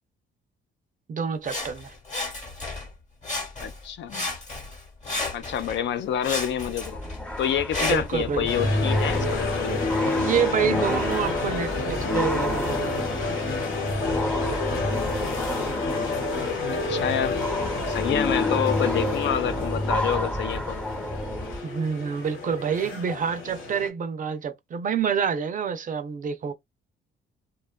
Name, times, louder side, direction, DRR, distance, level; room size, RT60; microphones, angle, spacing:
voice 1, 1.1-1.9 7.8-8.5 10.2-13.1 21.6-26.5, right 7 dB, 40° right, 0.5 m, -27 dB
Sawing, 1.4-2.9 3.2-3.8 4.1-5.8 6.2-8.2 8.9-9.0, left 2 dB, 35° left, 1.0 m, -32 dB
voice 2, 3.6-4.3 5.3-7.0 7.4-9.8 16.7-17.4 17.9-20.8, left 9 dB, 65° left, 0.5 m, -28 dB
sound 1, 6.8-21.6, left 1 dB, 5° left, 0.6 m, -29 dB
sound 2, 8.4-23.9, left 3 dB, 85° left, 1.1 m, -30 dB
2.7 x 2.2 x 2.2 m
cardioid pair, 90°, 20 cm